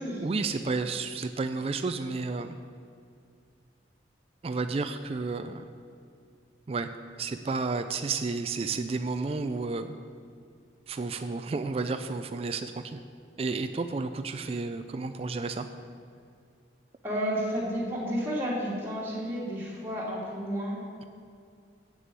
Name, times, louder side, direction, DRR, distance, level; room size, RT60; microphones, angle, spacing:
voice 1, 0.2-2.5 4.4-5.6 6.7-6.9 7.2-10.0 10.9-13.0 13.4-15.7, right 4 dB, 30° right, 8 dB, 0.3 m, -31 dB
voice 2, 17.0-20.8, equal, 10° right, -7 dB, 2.3 m, -31 dB
7.7 x 6.5 x 7.5 m, 2.3 s
head